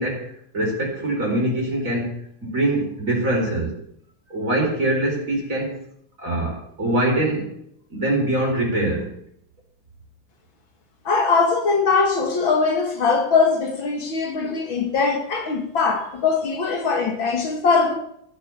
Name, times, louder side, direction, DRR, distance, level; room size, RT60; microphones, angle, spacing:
voice 1, 0.0-2.1 2.4-3.7 4.3-5.8 6.2-7.5 7.9-9.2, right 1 dB, 40° right, 4.5 m, -23 dB
voice 2, 11.1-17.9, left 4 dB, 70° left, 2.7 m, -21 dB
15.0 x 7.0 x 6.9 m
omnidirectional pair, 2.3 m